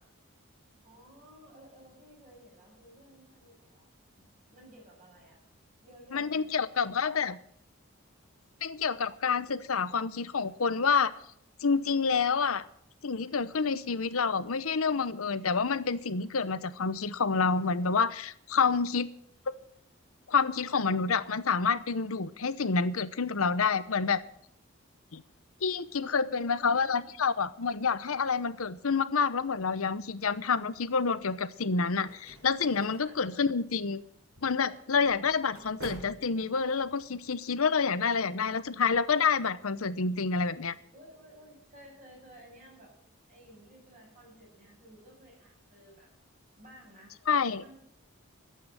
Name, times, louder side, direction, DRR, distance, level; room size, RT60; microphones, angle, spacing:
voice 1, 0.8-3.9 4.2-5.4 5.8-6.6 26.0-27.1 33.0-33.5 35.1-35.3 40.9-42.9 43.3-46.1 46.5-47.2 47.6-47.8, equal, 35° right, -2 dB, 6.8 m, -55 dB
voice 2, 6.1-7.4 8.6-11.1 11.6-12.7 13.0-19.1 20.3-24.2 25.1-25.2 25.6-34.0 34.4-40.7 47.3-47.6, left 5 dB, 80° left, 15 dB, 0.8 m, -28 dB
sound 1, 31.6-36.9, right 1 dB, 80° right, 6.0 m, -50 dB
12.5 x 8.6 x 9.1 m, 0.68 s
head